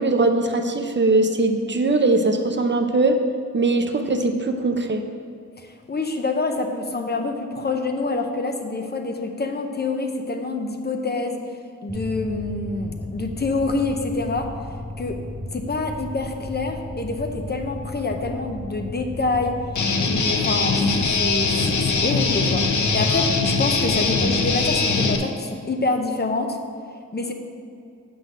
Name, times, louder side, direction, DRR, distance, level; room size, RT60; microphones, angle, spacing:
voice 1, 0.0-3.2 3.5-5.0, right 2 dB, 40° right, 5 dB, 0.5 m, -20 dB
voice 2, 5.6-11.4 11.8-14.5 15.0-15.2 15.5-19.5 19.9-20.8 21.2-26.6 27.1-27.3, left 3 dB, 35° left, 4 dB, 0.6 m, -26 dB
Mechanical fan, 11.9-24.7, left 1 dB, ahead, 1.0 m, -35 dB
Guitar, 19.8-25.2, left 4 dB, 75° left, 0.8 m, -21 dB
7.6 x 3.9 x 6.4 m, 2.3 s
wide cardioid pair, 125°, 30 cm